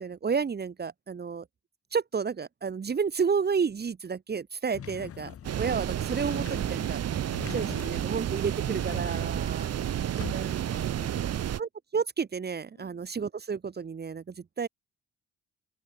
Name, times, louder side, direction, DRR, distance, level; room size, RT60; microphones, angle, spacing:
voice 1, 0.0-1.4 1.9-7.0 7.5-9.7 10.3-10.6 11.6-14.7, right 6 dB, 35° right, 1.2 m, -31 dB
sound 1, 4.7-10.7, left 9 dB, 50° left, 1.3 m, -44 dB
sound 2, 5.4-11.6, right 10 dB, 55° right, 1.1 m, -31 dB
voice 2, 7.1-9.0 9.4-11.5 12.8-13.2, left 11 dB, 70° left, 7.2 m, -56 dB
open air
cardioid pair, 90°, 30 cm